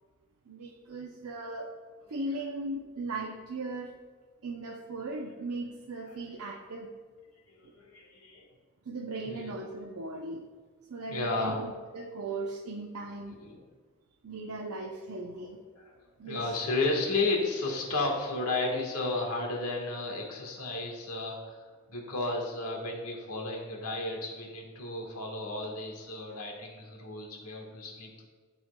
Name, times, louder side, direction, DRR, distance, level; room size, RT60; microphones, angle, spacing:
voice 1, 0.5-1.7 2.1-4.0 4.4-6.9 7.6-7.7 8.9-10.5 10.9-13.4 14.2-15.6 16.2-16.5, right 2 dB, 85° right, 0 dB, 0.6 m, -38 dB
voice 2, 7.8-8.5 9.2-9.5 11.1-11.6 13.4-13.6 15.3-15.5 15.7-15.9 16.2-21.6 21.9-28.1, left 2 dB, 90° left, 0 dB, 1.4 m, -33 dB
12.5 x 4.3 x 2.2 m, 1.4 s
head